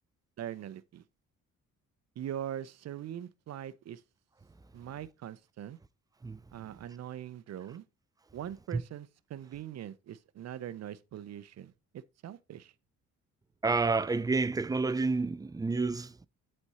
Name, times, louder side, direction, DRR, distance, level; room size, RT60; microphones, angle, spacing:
voice 1, 0.4-1.0 2.2-4.0 4.7-5.8 6.5-7.8 8.3-12.7, right 10 dB, 60° right, 0.7 m, -42 dB
voice 2, 13.6-16.1, right 3 dB, 10° right, 0.4 m, -29 dB
8.1 x 4.4 x 4.2 m
cardioid pair, 90°, 30 cm